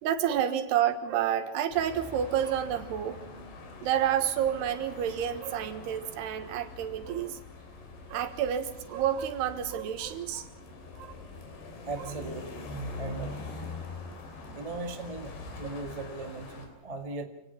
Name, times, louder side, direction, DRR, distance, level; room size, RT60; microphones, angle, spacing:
voice 1, 0.0-3.2 3.8-7.4 8.1-10.5 11.0-11.2 12.0-12.1 15.6-15.7, right 10 dB, 85° right, 10 dB, 3.6 m, -29 dB
sound 1, 1.7-16.7, left 2 dB, 85° left, 5.4 m, -43 dB
voice 2, 11.8-12.6 13.0-13.3 14.5-17.2, right 3 dB, 65° right, 5 dB, 0.3 m, -38 dB
27.0 x 18.0 x 5.9 m, 0.85 s
omnidirectional pair, 4.6 m